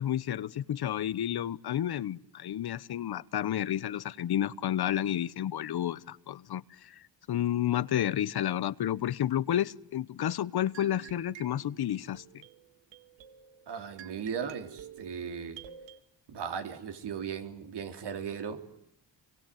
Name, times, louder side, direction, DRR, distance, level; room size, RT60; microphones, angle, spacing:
voice 1, 0.0-12.2, left 11 dB, 60° left, 1.1 m, -31 dB
sound 1, 10.7-16.0, right 10 dB, 85° right, 2.1 m, -50 dB
voice 2, 13.7-15.6 16.3-18.6, right 7 dB, 70° right, 3.6 m, -37 dB
26.5 x 24.0 x 9.2 m
supercardioid pair, 65°, 42 cm